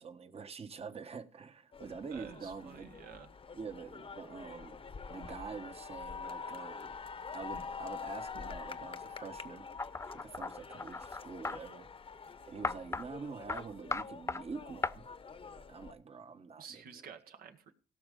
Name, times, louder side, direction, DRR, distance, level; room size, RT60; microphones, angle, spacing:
voice 1, 0.0-2.9 3.5-4.8 5.1-6.9 7.3-9.7 10.1-11.9 12.5-15.1 15.5-17.1, right 5 dB, 40° right, 1.4 m, -46 dB
sound 1, 1.7-15.9, left 5 dB, 40° left, 1.0 m, -46 dB
voice 2, 2.1-3.3 16.6-17.7, right 7 dB, 75° right, 1.7 m, -50 dB
sound 2, 9.8-11.6 12.6-13.1 13.5-13.6 13.9-14.4 14.8-14.9, left 3 dB, 20° left, 0.5 m, -36 dB
17.0 x 6.2 x 5.3 m
cardioid pair, 75°, 15 cm